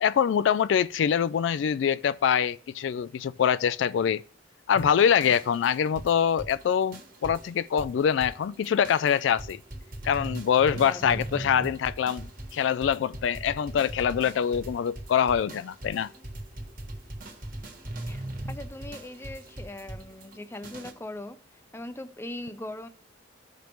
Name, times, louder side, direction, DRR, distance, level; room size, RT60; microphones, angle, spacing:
voice 1, 0.0-4.2 4.7-9.6 10.0-16.1, left 8 dB, 75° left, 0.3 m, -24 dB
sound 1, 4.7-20.9, right 1 dB, 45° right, 1.7 m, -40 dB
voice 2, 10.7-11.5 18.1-21.4 21.7-22.9, left 1 dB, 15° left, 0.6 m, -40 dB
15.0 x 5.2 x 3.0 m
head